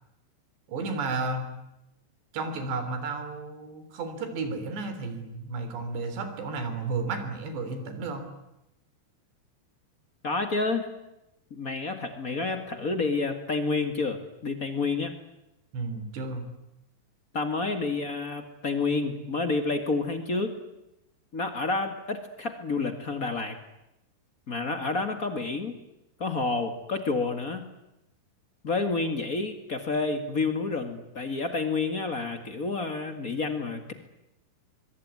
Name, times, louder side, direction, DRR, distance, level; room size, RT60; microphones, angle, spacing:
voice 1, 0.7-1.5 2.3-8.2 15.7-16.5, right 3 dB, 75° right, 8 dB, 5.7 m, -32 dB
voice 2, 10.2-10.9 11.5-15.1 17.3-20.5 21.3-23.6 24.5-25.8 26.2-27.7 28.6-33.9, left 3 dB, 60° left, 7 dB, 0.8 m, -29 dB
24.0 x 23.5 x 9.7 m, 0.88 s
omnidirectional pair, 5.0 m